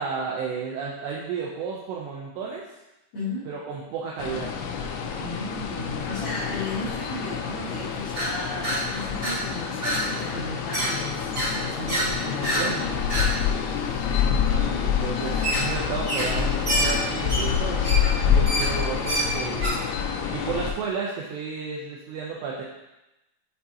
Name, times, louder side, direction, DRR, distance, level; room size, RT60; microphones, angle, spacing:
voice 1, 0.0-2.6 3.5-4.5 12.2-13.0 14.5-17.8 18.3-19.8 20.3-22.6, right 5 dB, 80° right, -4 dB, 2.5 m, -32 dB
voice 2, 3.1-3.5 5.2-12.8 18.2-18.6, left 2 dB, 60° left, -11 dB, 2.9 m, -35 dB
sound 1, 4.2-20.7, left 7 dB, 90° left, 2.5 m, -27 dB
sound 2, 8.2-8.3 8.6-8.8 9.2-9.3 9.8-10.0 10.3-10.9 11.3-11.5 11.9-12.1 12.4-12.6 13.1-13.3 15.4-15.7 16.0-16.4 16.7-19.7, right 1 dB, 50° right, 1.1 m, -26 dB
7.5 x 4.6 x 2.8 m, 0.95 s
omnidirectional pair, 5.6 m